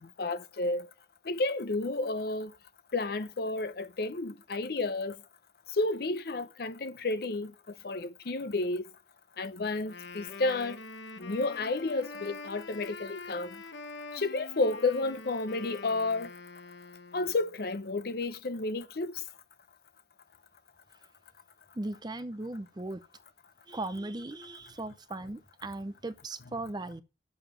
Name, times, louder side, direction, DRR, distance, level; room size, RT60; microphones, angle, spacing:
voice 1, 0.2-0.9 1.3-2.5 2.9-5.2 5.7-7.5 7.8-8.8 9.4-10.8 11.2-13.6 14.1-16.3 17.1-19.2, left 2 dB, 60° left, 0.6 m, -31 dB
Wind instrument woodwind instrument, 9.8-17.5, left 3 dB, 85° left, 1.1 m, -45 dB
voice 2, 21.8-23.0 23.7-27.0, right 2 dB, 25° right, 0.6 m, -38 dB
7.0 x 6.4 x 7.2 m
head